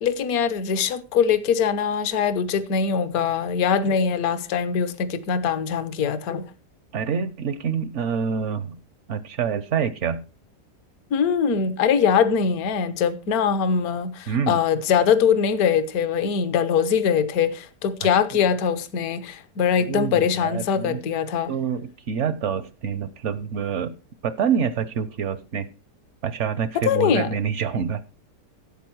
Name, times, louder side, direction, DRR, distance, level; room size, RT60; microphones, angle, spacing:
voice 1, 0.0-6.5 11.1-21.5 26.8-27.3, left 7 dB, 65° left, 1.4 m, -22 dB
voice 2, 6.9-8.8 9.1-10.2 14.3-14.6 18.0-18.1 19.9-21.0 21.5-23.9 24.2-25.7 26.2-28.0, right 7 dB, 60° right, 0.8 m, -26 dB
12.5 x 8.1 x 4.6 m
omnidirectional pair, 1.7 m